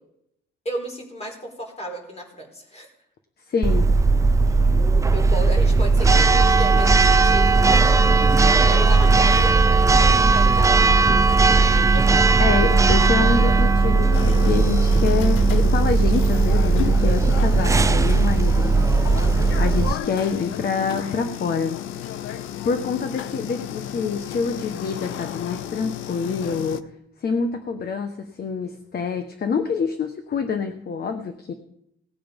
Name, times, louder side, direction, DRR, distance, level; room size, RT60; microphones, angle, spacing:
voice 1, 0.6-2.9 4.5-4.7 5.1-8.0 8.7-10.7 11.9-12.3, equal, 30° left, 2 dB, 4.6 m, -33 dB
voice 2, 3.5-3.9 12.4-18.8 19.6-21.8 22.6-26.9 27.2-31.5, left 5 dB, 50° left, 7 dB, 1.2 m, -26 dB
Church bell, 3.6-19.9, right 3 dB, 15° right, 0.4 m, -17 dB
sound 1, 14.1-26.8, left 11 dB, 90° left, 0.7 m, -33 dB
18.5 x 8.5 x 5.3 m, 0.80 s
cardioid pair, 90°, 20 cm